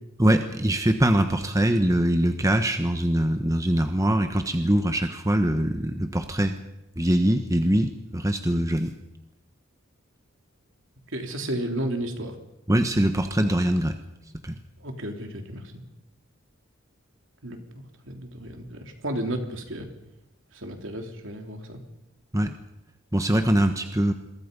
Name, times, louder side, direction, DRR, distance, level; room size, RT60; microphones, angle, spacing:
voice 1, 0.2-6.6 7.0-8.9 12.7-14.0 14.4-14.6 22.3-22.6 23.1-24.1, right 1 dB, 15° right, 6 dB, 1.2 m, -23 dB
voice 2, 11.1-12.3 14.8-15.6 17.4-17.6 18.1-19.9 20.5-21.8, right 1 dB, 60° right, 4 dB, 3.3 m, -32 dB
27.5 x 22.5 x 5.4 m, 0.91 s
head